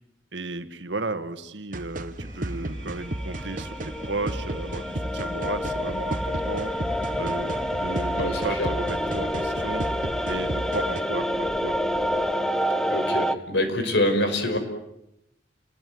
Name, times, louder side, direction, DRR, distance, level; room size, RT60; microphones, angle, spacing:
voice 1, 0.3-9.8 10.2-11.8, right 3 dB, 75° right, 10 dB, 1.9 m, -34 dB
sound 1, 1.7-11.0, right 1 dB, 45° right, 1.5 m, -34 dB
sound 2, 2.2-12.4, equal, 20° right, 2.3 m, -41 dB
sound 3, 3.0-13.4, equal, 5° left, 1.0 m, -28 dB
voice 2, 8.1-8.7 12.9-14.6, left 1 dB, 65° left, 7 dB, 5.2 m, -25 dB
30.0 x 20.0 x 9.5 m, 0.85 s
head